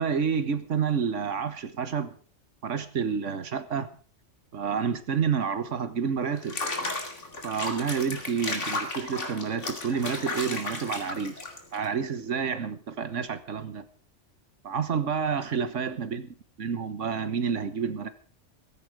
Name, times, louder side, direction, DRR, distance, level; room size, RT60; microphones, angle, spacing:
voice 1, 0.0-2.2 2.6-3.9 4.5-6.6 7.4-11.3 11.7-13.8 14.6-16.2 16.6-18.1, right 6 dB, 80° right, 1.6 m, -29 dB
Water / Bathtub (filling or washing), 6.4-11.9, left 2 dB, 85° left, 2.8 m, -34 dB
16.0 x 14.5 x 4.8 m
omnidirectional pair, 1.2 m